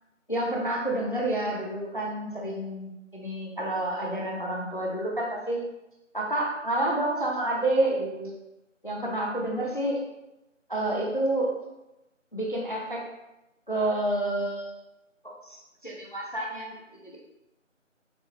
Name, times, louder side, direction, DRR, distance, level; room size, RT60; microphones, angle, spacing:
voice 1, 0.3-5.6 6.1-8.3 8.8-10.0 10.7-11.5 12.3-13.0 13.7-14.7 15.2-16.7 17.0-17.2, right 1 dB, 40° left, -2 dB, 0.5 m, -29 dB
5.9 x 2.1 x 3.1 m, 0.94 s
figure-of-eight pair, 170°, 39 cm